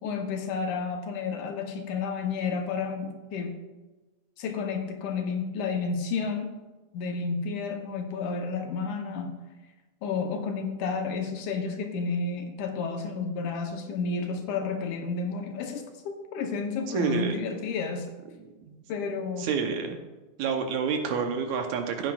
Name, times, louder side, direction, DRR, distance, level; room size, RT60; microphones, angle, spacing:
voice 1, 0.0-3.6 4.4-6.6 6.9-9.4 10.0-18.1 18.9-19.5, left 4 dB, 80° left, 4 dB, 2.4 m, -31 dB
voice 2, 16.9-17.4 18.7-18.8 19.4-20.0 20.4-22.1, right 6 dB, 75° right, 5 dB, 2.1 m, -28 dB
15.5 x 8.8 x 2.4 m, 1.2 s
omnidirectional pair, 3.5 m